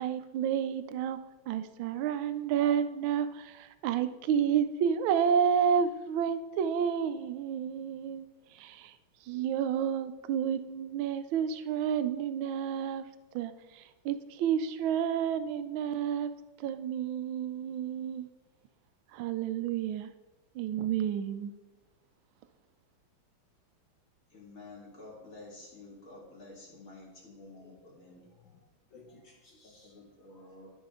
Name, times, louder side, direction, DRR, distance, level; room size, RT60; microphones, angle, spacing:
voice 1, 0.0-8.3 8.5-8.9 9.3-13.0 13.3-16.3 16.6-18.3 19.1-20.1 20.5-21.5, right 8 dB, 80° right, 11 dB, 1.3 m, -30 dB
voice 2, 24.3-28.2 29.6-30.7, left 2 dB, 40° left, -2 dB, 2.5 m, -50 dB
voice 3, 27.6-28.6 28.9-30.0 30.3-30.6, left 3 dB, 65° left, -2 dB, 1.8 m, -59 dB
13.0 x 5.2 x 3.7 m, 1.1 s
omnidirectional pair, 2.2 m